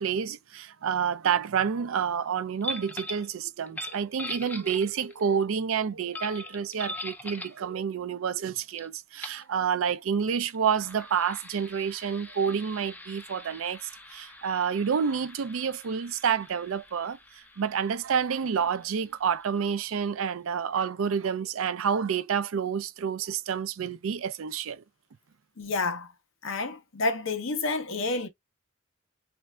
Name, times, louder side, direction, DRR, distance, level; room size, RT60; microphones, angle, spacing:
voice 1, 0.0-13.8 14.1-17.2 17.6-24.8, right 7 dB, 85° right, 0.4 m, -29 dB
sound 1, 2.6-3.3 3.7-5.2 6.1-7.6 8.8-8.9 9.2-9.4 10.5-19.8, left 1 dB, 10° left, 0.4 m, -42 dB
voice 2, 25.6-26.1 26.4-28.3, left 3 dB, 70° left, 0.9 m, -29 dB
3.3 x 2.6 x 2.2 m
head